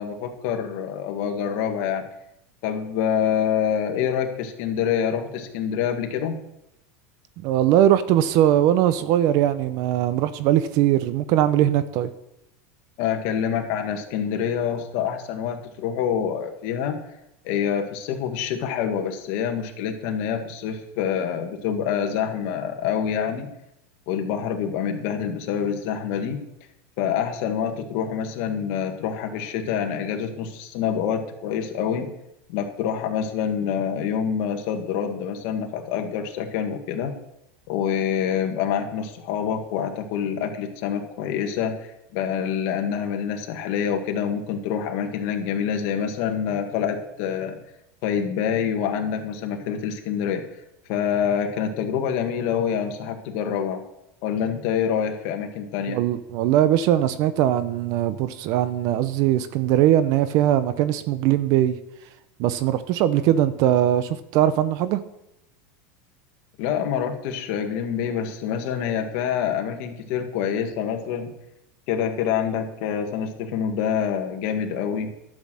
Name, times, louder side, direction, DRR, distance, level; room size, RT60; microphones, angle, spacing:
voice 1, 0.0-2.0 2.6-6.4 13.0-17.0 17.4-23.5 24.1-26.4 27.0-32.1 32.5-37.1 37.7-47.6 48.0-50.4 50.9-53.8 54.2-56.0 66.6-71.3 71.9-75.1, left 8 dB, 55° left, 4 dB, 1.7 m, -26 dB
voice 2, 7.4-12.1 55.9-61.8 62.4-65.0, right 12 dB, 50° right, 13 dB, 0.7 m, -20 dB
11.5 x 6.4 x 7.5 m, 0.86 s
supercardioid pair, 145°, 8 cm